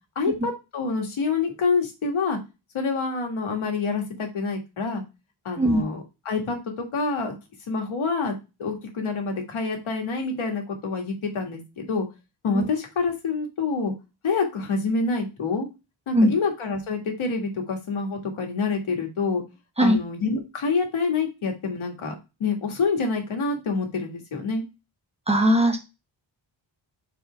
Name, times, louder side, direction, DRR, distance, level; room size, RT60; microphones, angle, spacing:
voice 1, 0.2-2.4 2.7-5.0 5.5-7.3 7.7-12.1 12.4-13.9 14.2-15.7 16.1-19.4 19.8-22.1 22.4-24.6, left 4 dB, 90° left, 2 dB, 1.8 m, -27 dB
voice 2, 25.3-25.8, equal, 15° right, 2 dB, 0.8 m, -19 dB
4.6 x 4.2 x 5.6 m, 0.27 s
wide cardioid pair, 170°, 47 cm